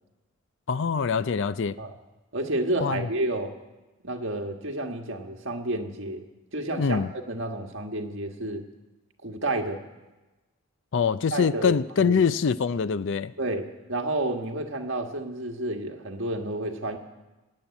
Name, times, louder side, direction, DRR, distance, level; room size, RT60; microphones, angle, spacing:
voice 1, 0.7-1.8 2.8-3.1 6.8-7.1 10.9-13.3, left 6 dB, 55° left, 16 dB, 0.4 m, -24 dB
voice 2, 2.3-3.5 4.0-6.2 6.5-8.6 9.2-9.8 11.3-11.8 12.0-12.2 13.4-17.0, right 2 dB, 60° right, 3 dB, 1.5 m, -30 dB
17.5 x 7.6 x 9.7 m, 1.1 s
head